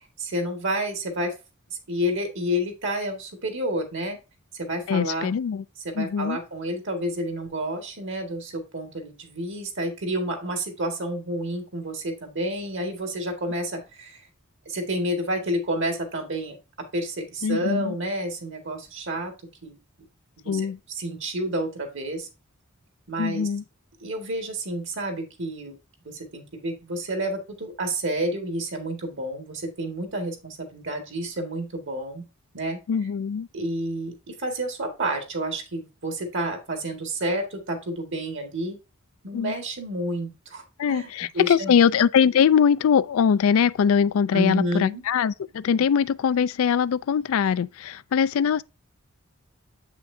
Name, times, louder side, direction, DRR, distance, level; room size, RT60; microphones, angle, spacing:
voice 1, 0.2-1.3 1.7-4.2 4.5-5.3 5.8-14.2 14.7-16.6 16.9-19.3 19.6-19.8 20.4-22.3 23.1-23.5 24.0-25.8 26.1-32.2 32.5-32.8 33.5-38.8 39.2-41.7 44.3-45.0 45.8-45.9, right 1 dB, 60° right, 1.9 m, -30 dB
voice 2, 4.9-5.6 6.0-6.4 17.4-17.9 20.5-20.8 23.2-23.6 32.9-33.5 39.3-39.5 40.8-48.6, left 7 dB, 75° left, 0.4 m, -22 dB
7.8 x 5.9 x 2.7 m
head